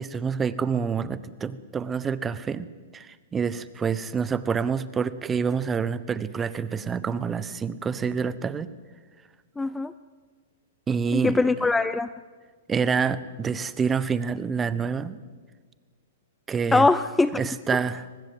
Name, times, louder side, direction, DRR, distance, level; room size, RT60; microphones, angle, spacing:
voice 1, 0.0-2.7 2.9-8.7 10.9-11.4 12.7-15.2 16.5-16.9 17.4-18.2, right 6 dB, 15° right, 16 dB, 1.1 m, -27 dB
voice 2, 9.6-9.9 11.1-12.1 16.7-17.4, left 3 dB, 10° left, 14 dB, 0.6 m, -21 dB
24.0 x 19.5 x 7.8 m, 1.5 s
hypercardioid pair, 125°, 0 cm